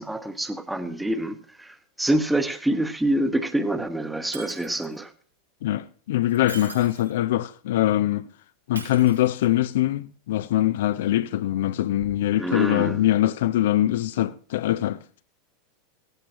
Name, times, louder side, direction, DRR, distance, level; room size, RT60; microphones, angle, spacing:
voice 1, 0.0-5.1 12.4-13.1, right 1 dB, 5° right, 1.2 m, -26 dB
Shatter, 4.3-5.0 6.2-7.2 8.8-9.7 12.0-12.1, right 4 dB, 80° right, 5.4 m, -42 dB
voice 2, 5.6-8.3 8.7-15.0, left 14 dB, 55° left, 0.5 m, -23 dB
17.5 x 14.5 x 2.9 m
figure-of-eight pair, 90°, 0 cm